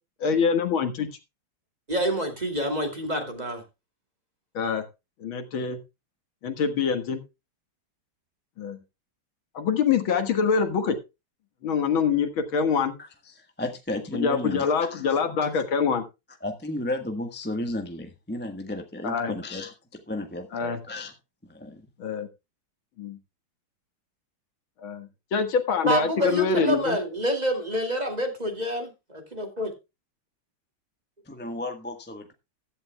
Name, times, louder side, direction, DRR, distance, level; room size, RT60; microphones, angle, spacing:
voice 1, 0.2-1.1 4.5-4.8 5.2-5.8 6.4-7.2 8.6-8.8 9.5-11.0 11.6-13.0 14.1-16.0 19.0-19.3 20.5-20.8 22.0-22.3 23.0-23.2 24.8-27.0, left 6 dB, 75° left, 2.3 m, -25 dB
voice 2, 1.9-3.6 25.8-29.7, right 1 dB, 20° right, 2.4 m, -27 dB
voice 3, 13.6-15.2 16.4-19.7 20.1-21.1 21.5-21.8 31.3-32.3, left 1 dB, 5° left, 0.9 m, -33 dB
15.5 x 11.5 x 2.2 m
omnidirectional pair, 2.3 m